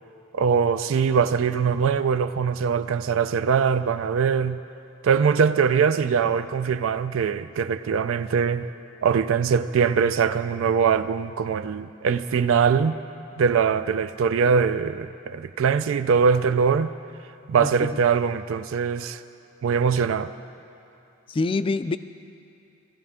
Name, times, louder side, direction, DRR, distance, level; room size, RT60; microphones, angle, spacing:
voice 1, 0.3-4.6 5.0-8.7 9.0-13.0 13.4-16.9 17.5-19.2 19.6-20.3, right 6 dB, 75° right, 0.4 m, -22 dB
voice 2, 17.6-17.9 21.3-22.0, left 3 dB, 25° left, 0.3 m, -25 dB
17.5 x 15.0 x 3.6 m
head